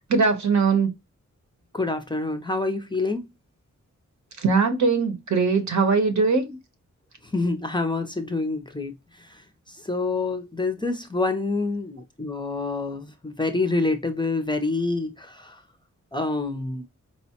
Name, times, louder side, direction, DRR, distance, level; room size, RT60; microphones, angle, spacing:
voice 1, 0.1-0.9 4.4-6.5, right 4 dB, 75° right, 0.9 m, -21 dB
voice 2, 1.7-3.2 7.3-8.9 9.8-15.6 16.1-16.8, left 3 dB, 15° left, 0.4 m, -27 dB
4.4 x 2.1 x 2.8 m
wide cardioid pair, 145°, 30 cm